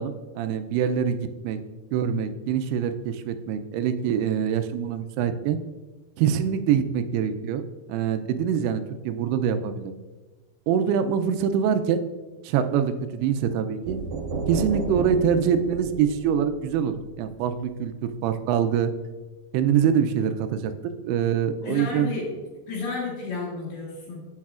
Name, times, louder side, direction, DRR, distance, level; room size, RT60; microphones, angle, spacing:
voice 1, 0.0-1.6 1.9-5.6 6.2-7.6 7.9-9.9 10.7-12.0 12.4-14.0 14.5-18.9 19.5-20.7 21.0-22.1, right 8 dB, 85° right, 10 dB, 2.6 m, -24 dB
sound 1, 13.9-17.6, right 4 dB, 70° right, 2.6 m, -33 dB
voice 2, 21.6-22.4 22.7-24.3, left 3 dB, 75° left, -7 dB, 3.2 m, -32 dB
8.7 x 8.1 x 2.4 m, 1.3 s
omnidirectional pair, 4.6 m